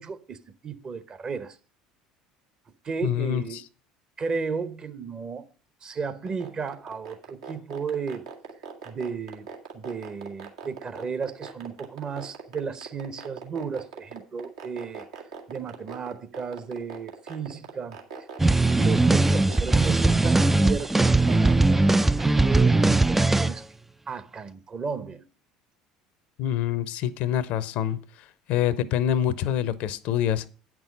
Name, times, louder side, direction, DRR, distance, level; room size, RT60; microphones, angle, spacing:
voice 1, 0.0-1.6 2.8-3.6 4.2-5.5 5.8-8.2 8.8-9.5 9.7-15.1 15.5-18.3 18.7-23.7 24.1-25.3, right 5 dB, 35° right, 1.0 m, -34 dB
voice 2, 3.0-3.4 26.4-28.0 28.5-30.5, left 11 dB, 55° left, 0.7 m, -25 dB
sound 1, 6.3-23.2, right 5 dB, 75° right, 1.8 m, -39 dB
sound 2, 18.4-23.6, right 2 dB, 10° right, 0.3 m, -20 dB
9.1 x 6.1 x 5.2 m
figure-of-eight pair, 65°, 3 cm